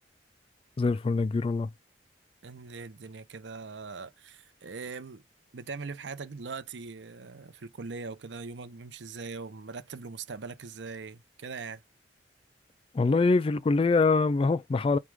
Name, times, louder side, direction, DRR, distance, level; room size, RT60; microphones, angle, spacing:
voice 1, 0.8-1.7 12.9-15.0, left 3 dB, 30° left, 0.3 m, -24 dB
voice 2, 2.4-5.2 5.5-11.8, right 4 dB, 75° right, 0.6 m, -41 dB
4.6 x 2.3 x 3.4 m
head